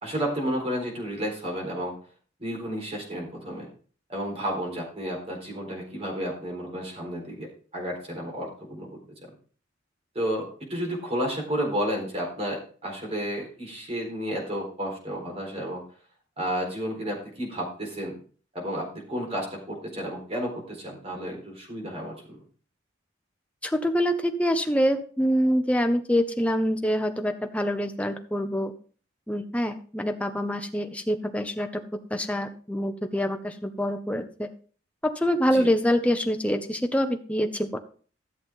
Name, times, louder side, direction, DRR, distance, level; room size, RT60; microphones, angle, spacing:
voice 1, 0.0-1.9 2.4-3.7 4.1-9.0 10.1-15.8 16.4-18.1 18.5-22.4 35.5-35.7, equal, 35° right, 0 dB, 4.1 m, -32 dB
voice 2, 23.6-28.7 29.3-31.8 32.1-34.5 35.0-37.8, equal, 5° left, 6 dB, 0.8 m, -25 dB
14.0 x 7.3 x 3.7 m, 0.41 s
head